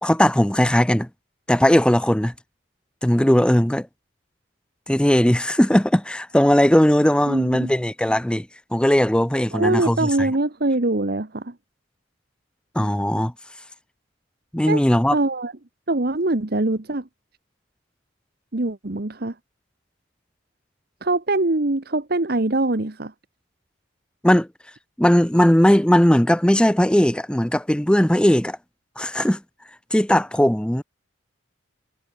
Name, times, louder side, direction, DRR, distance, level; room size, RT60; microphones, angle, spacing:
voice 1, 0.0-1.1 1.5-2.3 3.0-3.9 4.9-8.5 8.7-10.3 12.7-13.3 14.5-15.1 24.2-24.5 25.0-28.6 29.0-29.4 29.9-30.8, equal, 5° left, 0.6 m, -18 dB
voice 2, 7.3-7.7 9.5-11.5 14.7-14.8 15.1-15.5 15.9-17.1 18.5-19.3 21.0-23.1, right 2 dB, 50° right, 1.2 m, -23 dB
head